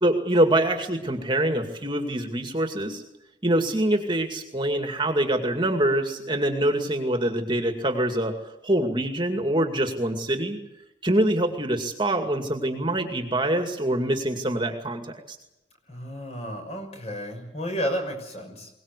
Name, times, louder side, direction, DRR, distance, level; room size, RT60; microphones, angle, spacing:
voice 1, 0.0-3.0 3.4-8.3 8.6-10.6 11.0-15.4, right 1 dB, 25° right, 4 dB, 2.3 m, -25 dB
voice 2, 15.9-18.7, equal, 35° left, 5 dB, 6.2 m, -32 dB
23.0 x 19.5 x 8.3 m, 0.89 s
head